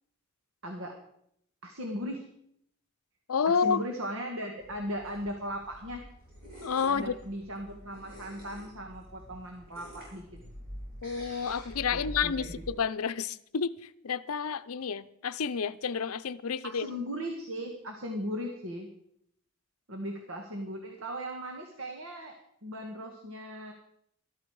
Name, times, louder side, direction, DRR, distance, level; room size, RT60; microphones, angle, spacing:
voice 1, 0.6-0.9 1.6-2.2 3.5-6.0 6.9-10.2 11.9-12.5 16.6-18.9 19.9-23.7, equal, 70° right, 1.6 m, -38 dB
voice 2, 3.3-3.8 6.6-7.2 11.0-13.7 14.0-16.9, left 6 dB, 80° left, 0.6 m, -30 dB
sound 1, 4.6-12.7, equal, 40° right, 7.2 m, -46 dB
13.0 x 13.0 x 4.8 m
head